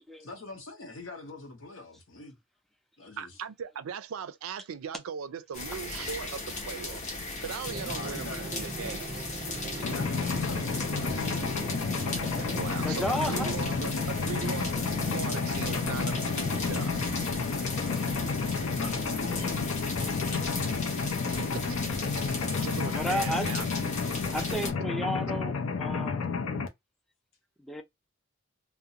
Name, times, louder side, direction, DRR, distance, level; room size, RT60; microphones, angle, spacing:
voice 1, 0.2-2.4 3.0-3.4 7.8-8.6 9.7-11.6 18.7-21.1, left 2 dB, 70° left, 0.8 m, -45 dB
voice 2, 3.2-7.0 7.4-9.2 12.6-17.0 21.5-21.8 22.2-23.7 24.4-24.5, right 7 dB, 90° right, 0.4 m, -39 dB
sound 1, 5.5-24.7, left 3 dB, 35° left, 0.7 m, -37 dB
Drum, 7.7-20.0, right 2 dB, 20° right, 0.8 m, -42 dB
voice 3, 9.5-9.8 12.8-13.5 17.5-17.7 22.9-23.5 24.3-26.2 27.6-27.8, equal, ahead, 0.4 m, -33 dB
Mechanisms, 9.8-26.7, left 5 dB, 85° left, 0.5 m, -31 dB
2.4 x 2.1 x 2.7 m
head